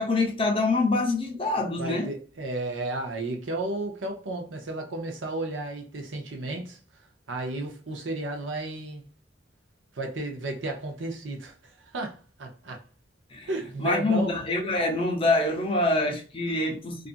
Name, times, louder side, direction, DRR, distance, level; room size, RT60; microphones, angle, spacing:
voice 1, 0.0-2.1 13.3-13.5 13.8-17.1, left 2 dB, 30° left, 0.6 m, -25 dB
voice 2, 1.8-6.8 7.3-9.0 9.9-12.8 13.5-14.3 14.9-15.0 16.6-16.8, right 2 dB, 75° right, 0.7 m, -33 dB
2.5 x 2.4 x 2.5 m
head